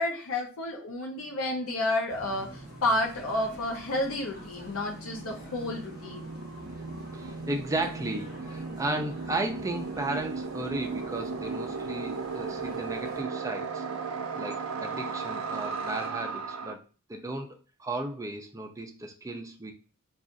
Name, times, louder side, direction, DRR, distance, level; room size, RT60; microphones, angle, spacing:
voice 1, 0.0-6.3, left 1 dB, 75° left, 1 dB, 0.6 m, -30 dB
sound 1, 1.2-1.3 1.5-16.7, right 4 dB, 85° right, 0.5 m, -37 dB
sound 2, 2.1-13.2, equal, 50° left, 1.2 m, -48 dB
voice 2, 7.1-13.8 14.4-16.8 17.1-19.7, right 2 dB, 15° right, 4 dB, 0.4 m, -34 dB
2.4 x 2.4 x 3.7 m, 0.38 s
head